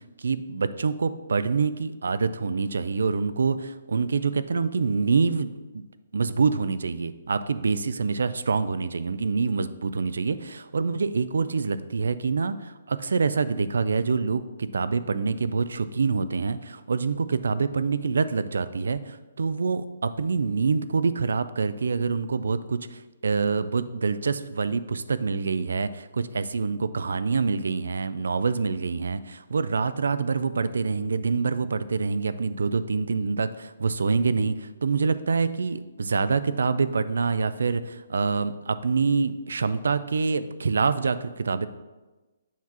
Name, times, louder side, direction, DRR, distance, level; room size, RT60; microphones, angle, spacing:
voice 1, 0.0-5.8 6.1-41.7, right 4 dB, 90° right, 14 dB, 0.4 m, -26 dB
7.2 x 5.9 x 2.9 m, 1.2 s
hypercardioid pair, 170°, 0 cm